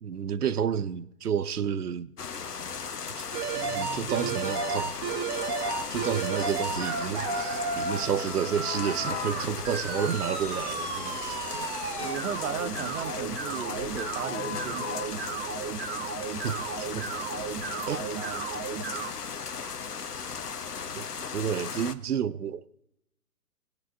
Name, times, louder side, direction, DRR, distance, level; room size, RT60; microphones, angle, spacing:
voice 1, 0.0-2.1 3.2-3.3 3.5-4.9 5.9-11.7 16.4-17.1 17.9-18.1 21.0-21.1 21.3-22.7, right 8 dB, 70° right, 0.8 m, -30 dB
sound 1, 2.2-22.0, left 6 dB, 75° left, 1.2 m, -37 dB
sound 2, 3.3-19.1, right 6 dB, 15° right, 0.6 m, -34 dB
sound 3, 4.4-18.5, left 9 dB, 45° left, 0.9 m, -43 dB
voice 2, 12.0-15.2 18.0-18.4, right 7 dB, 55° right, 1.3 m, -36 dB
20.5 x 10.5 x 2.7 m
figure-of-eight pair, 125°, 47 cm